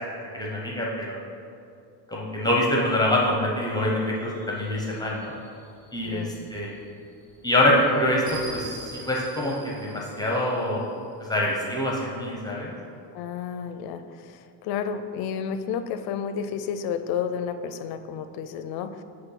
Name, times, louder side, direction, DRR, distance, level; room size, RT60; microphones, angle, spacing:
voice 1, 0.3-1.2 2.1-5.3 5.9-6.7 7.4-10.8 11.3-12.7, left 1 dB, 10° left, -3 dB, 0.7 m, -25 dB
sound 1, 3.6-11.1, right 2 dB, 10° right, 1.0 m, -45 dB
voice 2, 6.0-6.4 13.1-19.0, left 7 dB, 55° left, 10 dB, 0.5 m, -31 dB
8.1 x 3.2 x 5.7 m, 2.4 s
cardioid pair, 160°, 45 cm